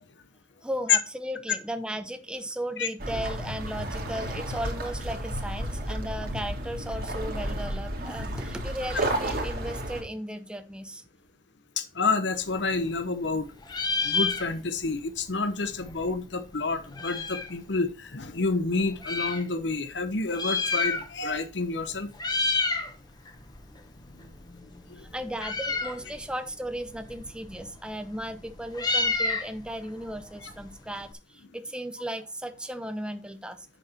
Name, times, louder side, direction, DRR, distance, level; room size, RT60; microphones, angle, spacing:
voice 1, 0.6-11.0 24.9-33.7, equal, 5° right, 0.6 m, -36 dB
sound 1, 3.0-10.0, right 1 dB, 50° right, 1.8 m, -32 dB
voice 2, 11.8-13.5 14.0-22.1 30.4-30.5, left 4 dB, 70° left, 0.9 m, -28 dB
Meow, 12.4-13.4 13.6-14.9 15.2-15.3 15.5-17.6 18.2-19.4 20.2-21.4 21.6-21.9 22.1-22.9 23.3-31.1, left 3 dB, 20° left, 1.1 m, -31 dB
8.2 x 6.2 x 4.3 m
head